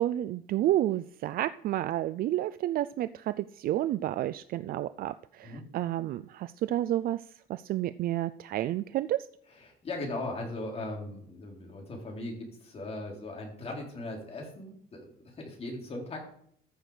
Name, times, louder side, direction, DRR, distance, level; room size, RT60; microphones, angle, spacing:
voice 1, 0.0-7.2 7.5-9.3, right 13 dB, 60° right, 14 dB, 0.4 m, -30 dB
voice 2, 9.5-16.3, left 2 dB, 35° left, 0 dB, 3.9 m, -39 dB
14.0 x 6.1 x 5.0 m, 0.65 s
cardioid pair, 110°, 17 cm